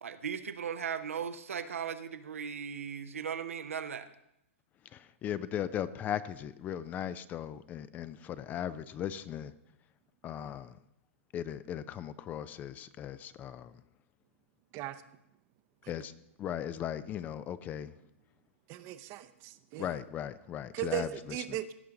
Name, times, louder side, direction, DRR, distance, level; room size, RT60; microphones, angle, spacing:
voice 1, 0.0-4.1, right 7 dB, 80° right, 10 dB, 0.7 m, -37 dB
voice 2, 4.9-9.5 10.2-10.7 11.3-13.7 15.9-16.1 16.4-17.9 19.8-21.1 21.5-21.6, left 10 dB, 25° left, 16 dB, 0.3 m, -37 dB
voice 3, 18.7-19.9 20.7-21.7, right 13 dB, 35° right, 11 dB, 0.6 m, -37 dB
16.0 x 5.7 x 3.8 m, 0.80 s
hypercardioid pair, 125°, 7 cm